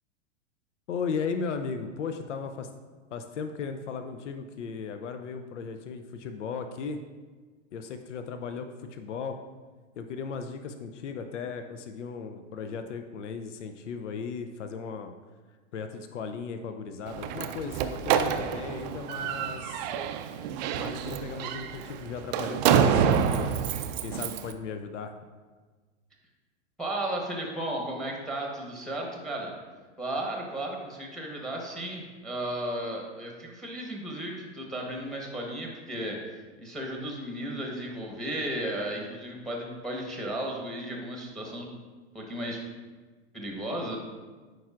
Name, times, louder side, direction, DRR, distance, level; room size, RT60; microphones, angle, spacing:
voice 1, 0.9-2.7 3.1-7.0 7.7-9.4 10.0-15.1 15.7-19.9 20.7-25.2, left 5 dB, 80° left, 7 dB, 0.6 m, -36 dB
Slam, 17.1-24.5, right 8 dB, 40° right, 0.4 m, -27 dB
voice 2, 26.8-29.5 30.0-41.7 42.1-42.6 43.3-44.0, right 1 dB, ahead, 0 dB, 1.0 m, -34 dB
8.8 x 4.6 x 2.4 m, 1.4 s
hypercardioid pair, 115°, 35 cm